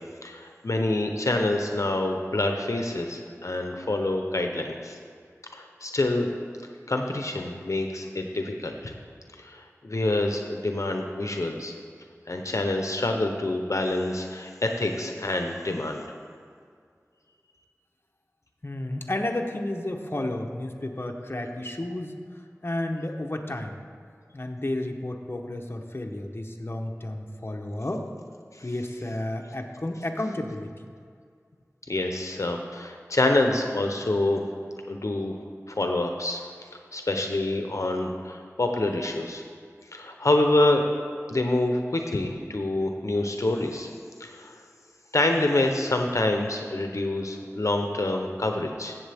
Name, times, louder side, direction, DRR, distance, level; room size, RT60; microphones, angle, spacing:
voice 1, 0.2-5.0 5.5-6.3 6.9-8.9 9.4-11.8 12.3-16.1 31.9-34.4 34.9-35.3 35.7-36.5 36.9-39.4 39.9-40.8 41.3-43.9 44.2-44.5 45.1-49.0, left 2 dB, 65° left, 3 dB, 0.8 m, -26 dB
voice 2, 18.6-22.2 22.6-23.8 24.3-28.1 28.6-30.7, left 1 dB, 40° left, 2 dB, 0.9 m, -32 dB
15.5 x 7.3 x 3.5 m, 2.2 s
wide cardioid pair, 50°, 6 cm